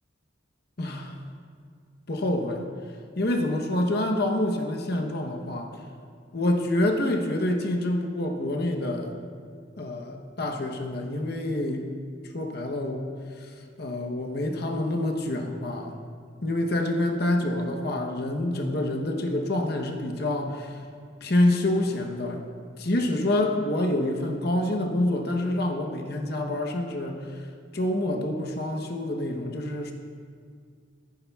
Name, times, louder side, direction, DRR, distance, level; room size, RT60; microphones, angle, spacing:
voice 1, 0.8-1.2 2.1-2.6 3.2-5.7 6.3-9.2 9.8-11.8 12.3-13.5 13.8-16.0 16.4-20.8 21.2-22.4 22.8-27.2 27.7-29.9, left 1 dB, 50° left, 2 dB, 0.9 m, -27 dB
15.0 x 9.5 x 2.3 m, 2.2 s
head